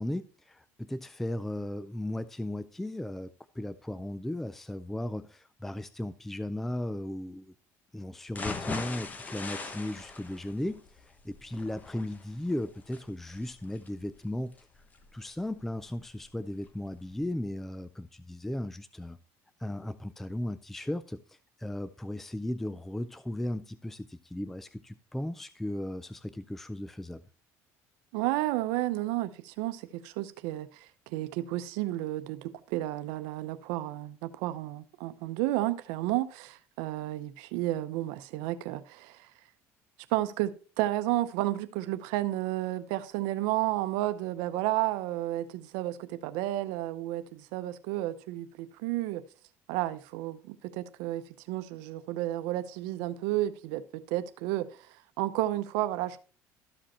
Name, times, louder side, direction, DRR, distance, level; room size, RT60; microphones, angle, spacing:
voice 1, 0.0-7.5 7.9-14.6 15.1-19.2 19.6-27.2, left 1 dB, 5° left, 0.3 m, -36 dB
sound 1, 8.3-16.3 16.7-16.8 17.2-17.3, left 4 dB, 25° left, 1.1 m, -41 dB
voice 2, 28.1-39.3 40.1-49.2 49.7-56.2, right 15 dB, 90° right, 0.7 m, -32 dB
13.0 x 5.1 x 4.2 m
cardioid pair, 130°, 6 cm